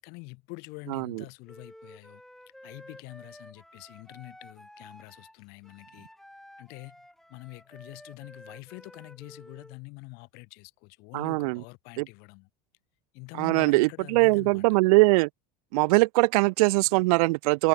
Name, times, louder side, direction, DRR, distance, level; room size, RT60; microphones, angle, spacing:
voice 1, 0.0-2.2 2.6-6.1 6.6-7.0 7.3-12.5 13.1-14.7, left 29 dB, 55° left, 6.6 m, -45 dB
voice 2, 0.9-1.2 11.1-11.6 12.0-12.1 13.4-15.3 15.7-17.7, right 25 dB, 70° right, 0.6 m, -22 dB
Wind instrument woodwind instrument, 1.4-9.8, left 1 dB, ahead, 5.2 m, -51 dB
supercardioid pair, 150°, 19 cm